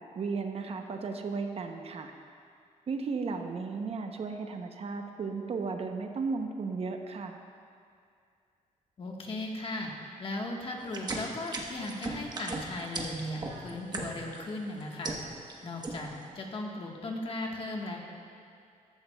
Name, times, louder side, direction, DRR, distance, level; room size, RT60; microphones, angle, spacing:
voice 1, 0.2-2.1 2.9-7.4, right 4 dB, 50° right, 5 dB, 0.7 m, -35 dB
voice 2, 9.0-9.9 10.2-15.2 15.6-18.0, left 2 dB, 45° left, 0 dB, 1.4 m, -37 dB
sound 1, 10.8-14.4 14.8-15.5 15.8-16.2, right 2 dB, 30° right, 1.1 m, -37 dB
14.5 x 12.0 x 2.3 m, 2.3 s
cardioid pair, 125°, 13 cm